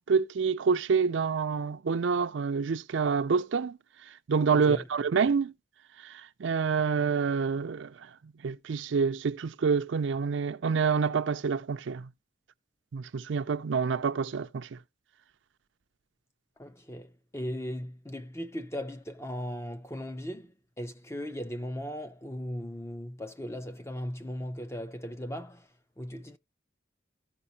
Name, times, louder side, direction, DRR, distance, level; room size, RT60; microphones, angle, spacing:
voice 1, 0.0-3.8 4.3-5.5 6.0-7.9 8.4-12.1 12.9-14.8, right 5 dB, 75° right, 0.4 m, -27 dB
voice 2, 4.5-4.8 16.6-20.5 20.8-25.7 26.0-26.4, equal, 15° left, 0.5 m, -37 dB
15.0 x 5.2 x 2.8 m
head